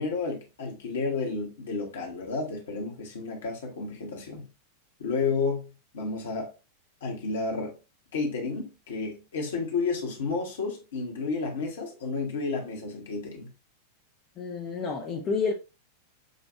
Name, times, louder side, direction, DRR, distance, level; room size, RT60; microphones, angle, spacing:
voice 1, 0.0-4.5 5.0-5.7 5.9-6.5 7.0-7.7 8.1-13.5, left 4 dB, 60° left, 1.3 m, -31 dB
voice 2, 14.4-15.5, left 4 dB, 30° left, 0.7 m, -29 dB
6.4 x 2.5 x 2.7 m
figure-of-eight pair, 90°, 0 cm